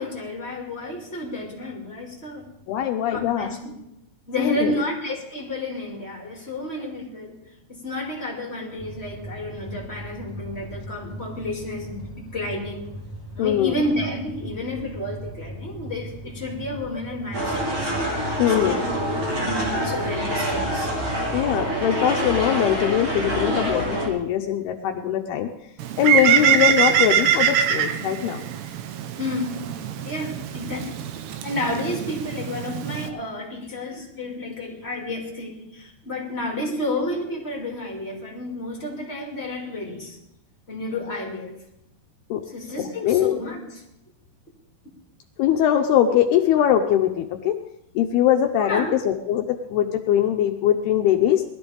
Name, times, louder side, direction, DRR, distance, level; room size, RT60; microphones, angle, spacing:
voice 1, 0.0-2.5 3.1-3.7 4.3-7.4 7.7-12.8 13.3-17.9 18.5-18.9 19.3-20.9 26.2-26.5 29.2-29.6 30.0-31.0 31.4-40.2 40.7-41.5 42.5-43.8 48.6-48.9, left 1 dB, 20° left, -2 dB, 1.9 m, -31 dB
voice 2, 2.7-3.5 4.4-4.8 13.4-13.8 18.4-18.8 21.3-25.5 26.0-28.4 42.3-42.4 42.8-43.4 45.4-47.6 48.0-51.4, left 10 dB, 80° left, 4 dB, 2.6 m, -21 dB
sound 1, 8.8-21.6, equal, 5° right, 3.5 m, -39 dB
sound 2, 17.3-24.1, right 1 dB, 35° right, 3.1 m, -26 dB
Bird, 25.8-33.1, right 9 dB, 80° right, 3.0 m, -23 dB
20.0 x 13.0 x 3.5 m, 0.84 s
omnidirectional pair, 4.9 m